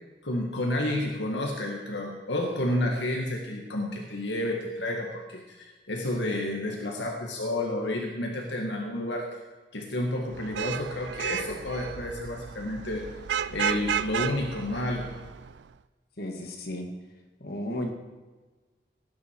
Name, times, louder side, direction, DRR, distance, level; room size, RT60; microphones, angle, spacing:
voice 1, 0.2-9.3 9.7-13.1 13.5-15.1, left 1 dB, 80° left, 1 dB, 1.8 m, -30 dB
Vehicle horn car horn honking / Traffic noise roadway noise, 10.3-15.6, right 8 dB, 75° right, 0.4 m, -33 dB
voice 2, 16.2-16.9 17.4-17.9, left 1 dB, 60° left, 2 dB, 2.2 m, -34 dB
18.0 x 9.7 x 4.7 m, 1.3 s
head